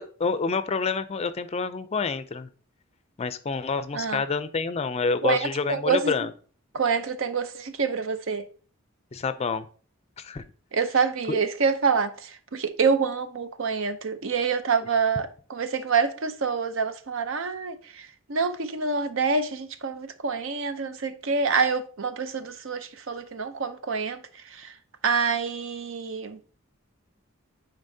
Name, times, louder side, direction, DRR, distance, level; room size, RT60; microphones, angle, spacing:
voice 1, 0.0-2.5 3.2-6.3 9.1-9.7 10.2-10.4 11.3-11.4, left 4 dB, 30° left, 0.4 m, -28 dB
voice 2, 5.2-6.1 6.7-8.4 10.7-24.2 24.5-24.7 25.0-26.4, right 5 dB, 70° right, 0.6 m, -26 dB
9.8 x 4.1 x 2.7 m
head